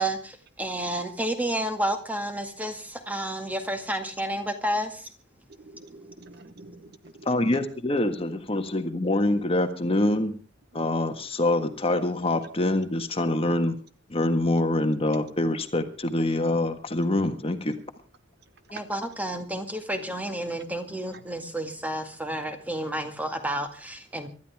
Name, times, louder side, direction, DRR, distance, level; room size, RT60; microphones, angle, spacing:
voice 1, 0.0-5.0 18.7-24.3, right 1 dB, 10° right, 6 dB, 2.0 m, -30 dB
voice 2, 5.5-7.6 21.1-21.2, right 2 dB, 55° right, 12 dB, 1.0 m, -47 dB
voice 3, 7.2-10.3 10.7-13.8 14.1-17.8, left 1 dB, 30° left, 7 dB, 1.6 m, -25 dB
25.0 x 12.5 x 3.6 m, 0.35 s
head